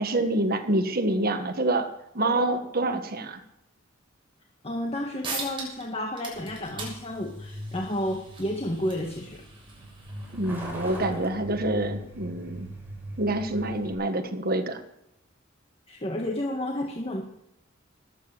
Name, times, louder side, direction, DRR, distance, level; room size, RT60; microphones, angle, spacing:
voice 1, 0.0-1.9 2.1-3.4 10.3-12.7 13.2-14.8, right 2 dB, 50° right, 8 dB, 1.5 m, -27 dB
voice 2, 4.6-9.4 15.9-17.2, left 1 dB, 30° left, 1 dB, 1.8 m, -31 dB
sound 1, 4.9-5.0 5.2-5.9 6.1-11.3, right 3 dB, 25° right, 6.8 m, -41 dB
Truck, 6.3-13.9, right 1 dB, 10° right, 6.0 m, -40 dB
20.0 x 9.0 x 7.8 m, 0.82 s
head